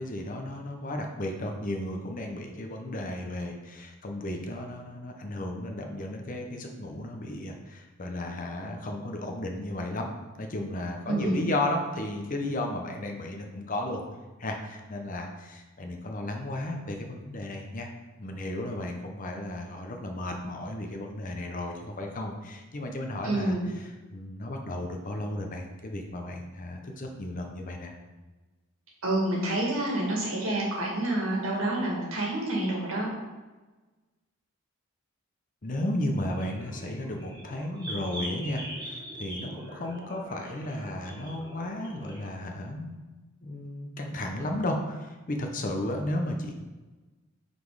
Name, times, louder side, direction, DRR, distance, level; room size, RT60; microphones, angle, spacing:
voice 1, 0.0-10.1 10.4-14.0 14.4-17.9 18.2-27.9 35.6-43.1 43.4-46.5, left 1 dB, 40° left, 3 dB, 0.7 m, -34 dB
voice 2, 11.1-11.5 23.2-23.7 29.0-33.1, right 1 dB, 65° right, -3 dB, 1.8 m, -28 dB
sound 1, 36.3-42.3, right 1 dB, 20° right, 1.3 m, -42 dB
5.3 x 4.1 x 4.7 m, 1.2 s
head